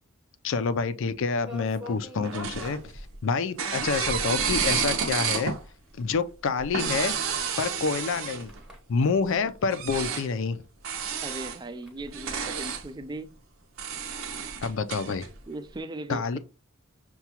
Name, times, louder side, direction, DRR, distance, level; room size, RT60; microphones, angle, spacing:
voice 1, 0.4-2.8 3.2-5.5 6.0-7.2 7.6-8.5 8.9-10.6 14.6-15.3 16.1-16.4, left 5 dB, 65° left, 0.4 m, -27 dB
sound 1, 1.4-10.6 10.9-11.0 11.4-13.2, left 1 dB, 5° right, 0.8 m, -47 dB
sound 2, 2.2-3.2 3.6-5.6 6.6-8.6 9.7-10.3 10.8-11.6 12.0-12.8 13.8-15.3, right 6 dB, 80° right, 0.7 m, -30 dB
voice 2, 11.2-13.4 15.5-16.4, right 2 dB, 20° right, 0.4 m, -38 dB
5.7 x 2.3 x 2.9 m
head